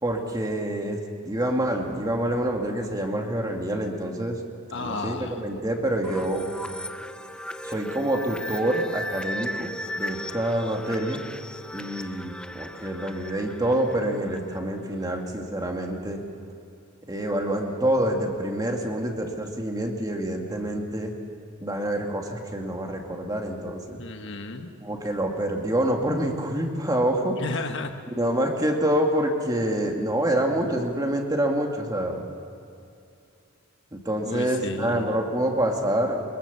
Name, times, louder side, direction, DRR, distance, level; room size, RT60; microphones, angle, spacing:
voice 1, 0.0-4.4 4.8-6.5 7.6-11.2 11.7-16.2 17.1-21.2 21.6-24.0 24.8-27.4 28.2-32.2 33.9-36.2, right 1 dB, 20° right, 2 dB, 2.2 m, -27 dB
voice 2, 4.7-5.4 24.0-24.7 27.4-27.9 34.2-35.2, left 3 dB, 60° left, 6 dB, 1.4 m, -33 dB
sound 1, 6.0-14.6, equal, 5° left, 0.6 m, -36 dB
24.0 x 22.5 x 7.0 m, 2.6 s
head